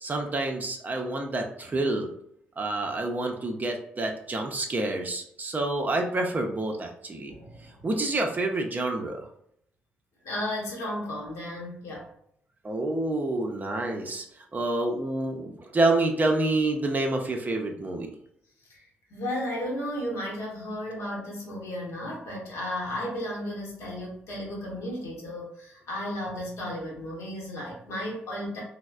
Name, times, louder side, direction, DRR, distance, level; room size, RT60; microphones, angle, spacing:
voice 1, 0.0-2.1 2.6-7.3 7.8-9.3 12.6-14.2 14.5-18.1, right 2 dB, 30° right, 3 dB, 0.5 m, -28 dB
voice 2, 7.3-7.8 10.2-12.1 18.7-18.8 19.1-28.6, left 1 dB, 60° left, -2 dB, 0.9 m, -34 dB
3.1 x 2.0 x 2.2 m, 0.71 s
hypercardioid pair, 40°, 5 cm